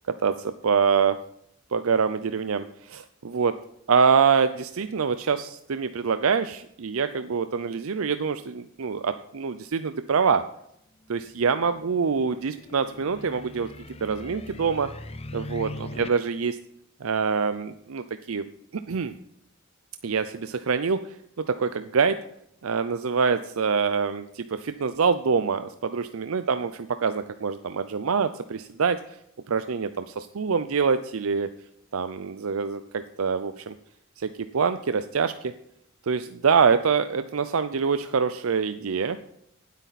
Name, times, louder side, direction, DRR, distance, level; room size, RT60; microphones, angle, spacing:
voice 1, 0.2-1.2 1.7-3.5 3.9-10.4 11.1-13.7 14.0-14.9 15.3-16.6 17.0-18.5 18.9-19.1 20.0-22.2 22.6-29.0 29.5-31.5 31.9-33.7 34.2-35.5 36.1-39.2, right 5 dB, 80° right, 11 dB, 0.5 m, -25 dB
sound 1, 11.2-16.1, left 1 dB, 30° left, 0.6 m, -41 dB
18.0 x 8.3 x 4.2 m, 0.74 s
head